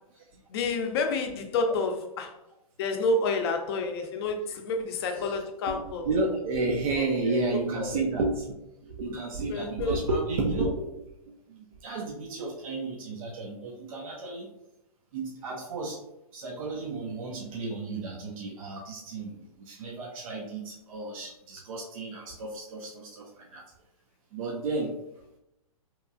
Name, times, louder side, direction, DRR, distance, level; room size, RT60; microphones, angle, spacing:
voice 1, 0.5-2.3 2.8-6.0 7.0-7.4 7.8-7.9 9.5-10.0, left 3 dB, 45° left, 5 dB, 0.5 m, -29 dB
voice 2, 5.1-8.5 8.8-10.8 11.5-14.5 15.1-16.0 16.3-23.7 24.3-25.0, right 3 dB, 65° right, 0 dB, 0.5 m, -32 dB
2.8 x 2.2 x 2.5 m, 0.87 s
hypercardioid pair, 130°, 19 cm